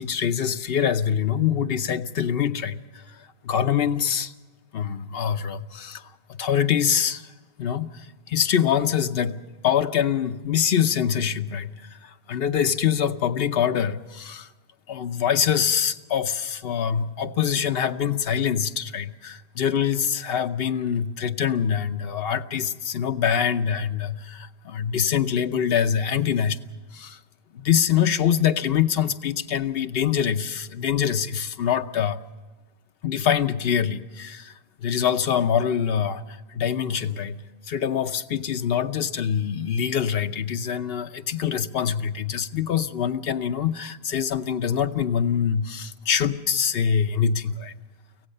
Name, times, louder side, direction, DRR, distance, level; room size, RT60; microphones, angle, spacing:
voice 1, 0.0-3.2 3.4-4.3 4.7-7.3 7.6-14.5 14.9-26.6 26.9-27.2 27.5-32.2 33.0-47.7, left 8 dB, 65° left, 7 dB, 1.0 m, -24 dB
25.0 x 16.0 x 6.6 m, 1.3 s
omnidirectional pair, 1.1 m